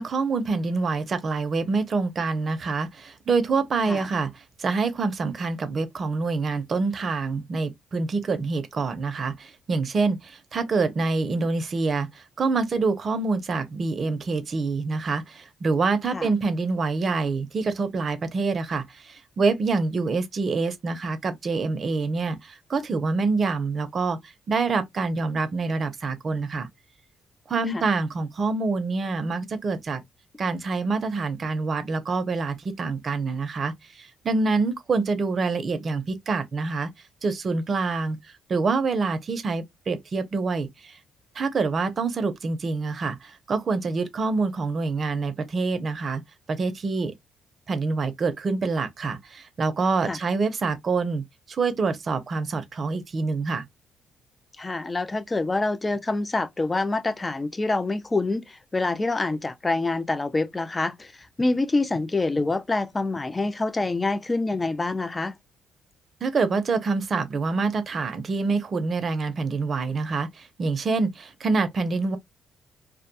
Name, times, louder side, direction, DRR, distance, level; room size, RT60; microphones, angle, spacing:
voice 1, 0.0-24.2 24.5-26.7 27.5-30.0 30.4-36.9 37.2-38.2 38.5-41.0 41.4-46.2 46.5-47.1 47.7-53.6 66.2-72.2, right 4 dB, 45° right, 0.6 m, -26 dB
voice 2, 54.6-61.1 61.4-65.3, left 2 dB, 20° left, 0.4 m, -26 dB
2.3 x 2.2 x 2.7 m
cardioid pair, 90°, 0 cm